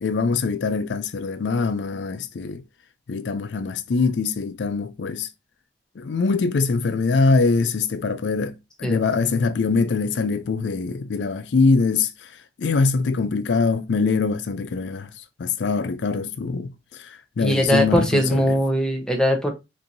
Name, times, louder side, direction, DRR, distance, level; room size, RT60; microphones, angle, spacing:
voice 1, 0.0-2.6 3.1-5.3 6.0-12.3 12.6-15.1 15.4-18.6, left 4 dB, 90° left, 0.4 m, -23 dB
voice 2, 17.4-19.5, equal, 5° left, 0.7 m, -20 dB
4.4 x 2.7 x 2.6 m
head